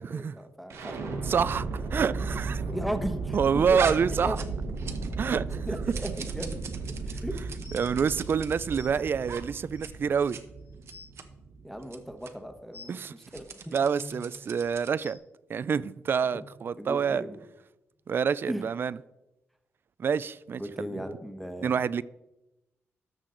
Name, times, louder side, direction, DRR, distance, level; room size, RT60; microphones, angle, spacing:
voice 1, 0.0-1.2 2.7-4.4 5.7-6.6 7.1-7.4 11.6-13.8 16.3-16.4 16.8-17.4 18.4-18.7 20.5-21.7, equal, ahead, 1.1 m, -37 dB
sound 1, 0.7-12.6, right 3 dB, 85° right, 1.5 m, -35 dB
voice 2, 1.3-1.7 1.9-2.6 3.3-4.4 5.2-5.7 7.7-10.4 12.9-13.1 13.7-15.2 15.5-17.2 18.1-19.0 20.0-20.9 21.6-22.0, right 6 dB, 50° right, 0.3 m, -27 dB
sound 2, 3.7-5.2 5.5-8.8 9.2-9.4 9.7-9.9 10.2-10.4 10.8-11.2 11.8-12.0 12.2-12.3 13.1-15.0, right 6 dB, 65° right, 0.9 m, -40 dB
sound 3, 7.6-7.9 8.7-8.9 9.7-9.8 10.4-10.5 10.7-11.1 12.7-12.9 13.9-14.2 15.0-15.1 16.3-16.4 17.1-17.2 17.9-18.0, left 3 dB, 70° left, 3.6 m, -47 dB
13.0 x 6.5 x 3.9 m
cardioid pair, 105°, 5 cm